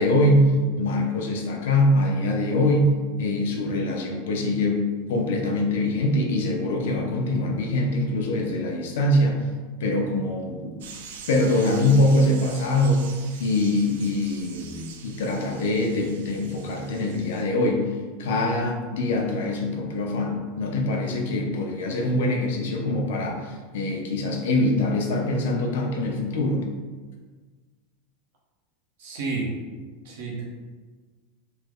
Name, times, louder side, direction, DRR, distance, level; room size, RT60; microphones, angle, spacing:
voice 1, 0.0-4.8 5.1-9.4 9.8-10.8 11.3-13.1 13.4-17.9 18.2-26.7, left 1 dB, 75° left, 1 dB, 0.6 m, -23 dB
sound 1, 10.8-17.4, right 6 dB, 80° right, 0.4 m, -44 dB
voice 2, 29.0-29.5 30.0-30.4, right 3 dB, 60° right, -3 dB, 0.9 m, -30 dB
3.2 x 2.0 x 3.5 m, 1.4 s
supercardioid pair, 170°, 0 cm